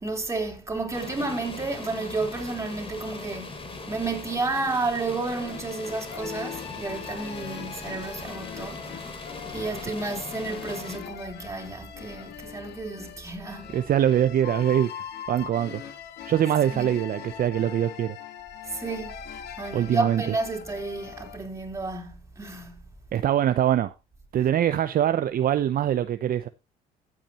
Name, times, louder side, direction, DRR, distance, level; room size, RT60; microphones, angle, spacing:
voice 1, 0.0-3.5 3.9-8.9 9.5-13.8 16.7-16.9 18.6-19.2 19.6-22.9, right 3 dB, 15° right, 4.1 m, -31 dB
sound 1, 0.9-11.0, left 3 dB, 30° left, 3.5 m, -40 dB
sound 2, 5.4-21.4, left 9 dB, 65° left, 2.1 m, -41 dB
voice 2, 13.7-15.8 16.3-18.2 19.7-20.2 23.1-23.9 24.3-26.5, right 10 dB, 50° right, 0.7 m, -23 dB
15.5 x 8.6 x 3.0 m
supercardioid pair, 80°, 19 cm